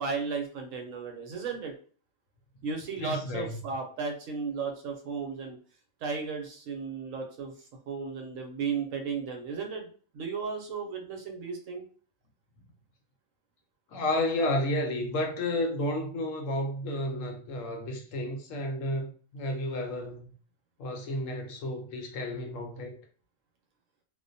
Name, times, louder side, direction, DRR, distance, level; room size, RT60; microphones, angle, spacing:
voice 1, 0.0-1.7 2.6-5.6 6.0-9.9 10.1-11.8, right 5 dB, 70° right, 3 dB, 1.0 m, -35 dB
voice 2, 3.0-3.6 13.9-20.3 20.8-22.9, left 1 dB, 75° left, 3 dB, 0.9 m, -31 dB
2.4 x 2.1 x 2.6 m, 0.40 s
omnidirectional pair, 1.5 m